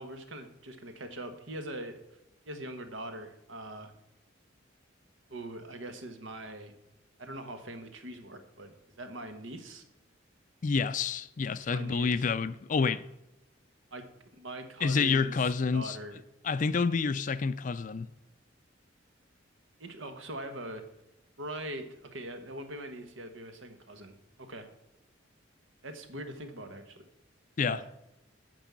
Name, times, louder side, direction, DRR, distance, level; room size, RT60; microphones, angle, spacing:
voice 1, 0.0-2.0 2.5-3.9 5.3-6.7 7.2-9.8 11.7-12.1 13.9-16.2 19.8-20.8 21.4-24.7 25.8-27.0 27.7-27.9, right 1 dB, 80° right, 1.3 m, -42 dB
voice 2, 10.6-13.0 14.8-16.0 16.4-18.1 27.6-27.8, left 5 dB, 40° left, 0.4 m, -28 dB
8.9 x 5.4 x 7.3 m
head